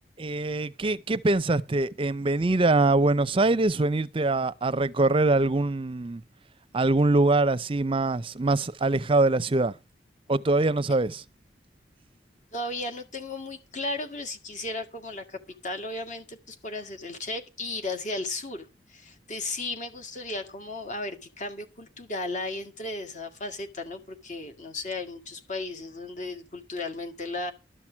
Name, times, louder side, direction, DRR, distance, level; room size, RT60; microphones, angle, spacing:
voice 1, 0.2-6.2 6.7-9.7 10.3-11.2, right 2 dB, 30° right, 0.6 m, -23 dB
voice 2, 12.5-27.5, left 2 dB, 45° left, 1.8 m, -35 dB
12.5 x 6.0 x 7.3 m
head